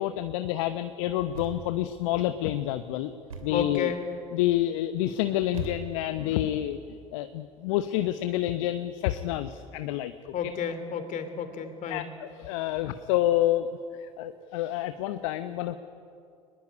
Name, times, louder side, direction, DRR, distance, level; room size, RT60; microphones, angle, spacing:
voice 1, 0.0-3.1 3.4-3.9 4.3-6.8 7.1-10.3 11.9-13.7 14.0-15.8, left 13 dB, 65° left, 10 dB, 0.9 m, -28 dB
Thump thud, 1.3-1.9 3.3-3.7 5.5-6.2, right 6 dB, 80° right, 2.6 m, -41 dB
voice 2, 3.5-4.1 10.3-12.1, left 7 dB, 45° left, 9 dB, 3.1 m, -31 dB
23.0 x 20.5 x 9.8 m, 2.5 s
figure-of-eight pair, 70°, 18 cm